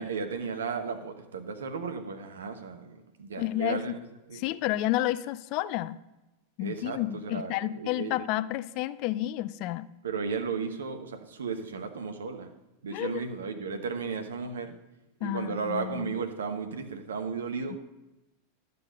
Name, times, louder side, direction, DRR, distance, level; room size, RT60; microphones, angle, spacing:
voice 1, 0.0-4.0 4.3-4.4 6.6-8.1 10.0-12.5 12.8-14.8 15.2-17.8, right 5 dB, 70° right, 7 dB, 1.1 m, -34 dB
voice 2, 3.4-3.9 4.3-6.0 6.6-9.9 12.9-13.2 15.2-16.1 17.7-17.8, left 15 dB, 45° left, 17 dB, 0.4 m, -31 dB
12.0 x 6.9 x 5.1 m, 1.0 s
figure-of-eight pair, 90°, 0 cm